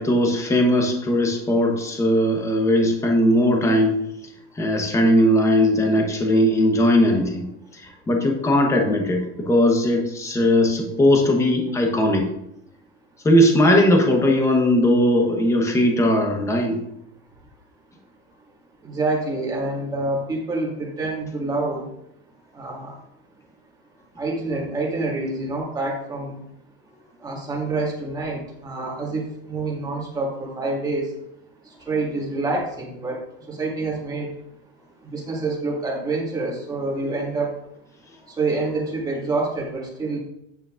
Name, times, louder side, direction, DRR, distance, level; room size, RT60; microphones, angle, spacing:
voice 1, 0.0-4.0 4.6-7.4 7.7-12.3 13.2-16.8, left 1 dB, 10° left, 2 dB, 0.9 m, -19 dB
voice 2, 18.8-21.9 22.5-22.9 24.2-26.4 27.2-31.1 31.9-33.2 33.5-34.3 35.0-37.6 38.4-40.2, right 3 dB, 10° right, -3 dB, 1.9 m, -27 dB
9.3 x 8.6 x 2.5 m, 0.80 s
supercardioid pair, 170°, 35 cm